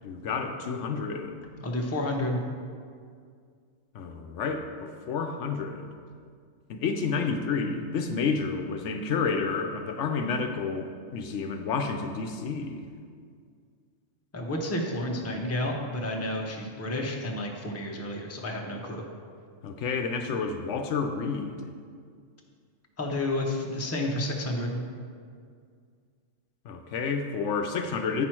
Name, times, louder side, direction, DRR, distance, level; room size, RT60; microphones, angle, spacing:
voice 1, 0.0-1.5 3.9-5.9 6.7-12.9 19.6-21.7 26.7-28.3, left 5 dB, 75° left, 5 dB, 0.9 m, -30 dB
voice 2, 1.6-2.4 14.3-19.0 23.0-24.8, left 1 dB, 15° left, 0 dB, 0.7 m, -30 dB
9.4 x 6.1 x 4.4 m, 2.1 s
omnidirectional pair, 1.3 m